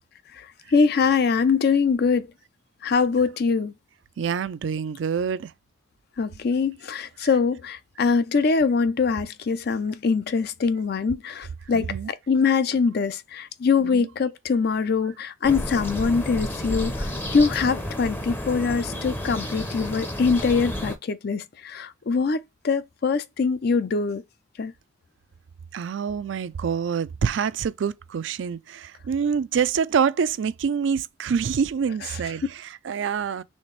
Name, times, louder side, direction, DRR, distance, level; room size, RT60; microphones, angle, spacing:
voice 1, 0.7-2.3 2.8-3.7 6.2-11.9 12.3-24.2 24.6-24.7, left 5 dB, 55° left, 0.4 m, -23 dB
voice 2, 4.2-5.5 7.2-7.3 11.7-12.1 13.8-14.1 25.7-33.4, right 6 dB, 75° right, 0.4 m, -26 dB
sound 1, 15.4-21.0, left 1 dB, 10° left, 0.6 m, -31 dB
4.2 x 3.3 x 3.1 m
head